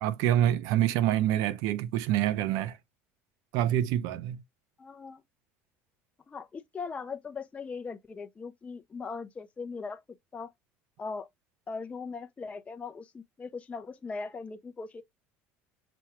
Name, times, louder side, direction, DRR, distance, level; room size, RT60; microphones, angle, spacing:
voice 1, 0.0-2.8 3.5-4.4, right 12 dB, 75° right, 0.7 m, -26 dB
voice 2, 4.8-5.2 6.3-10.0 10.3-10.5 11.0-11.3 11.7-15.0, left 4 dB, 20° left, 0.5 m, -39 dB
6.0 x 2.3 x 3.0 m
supercardioid pair, 110°, 6 cm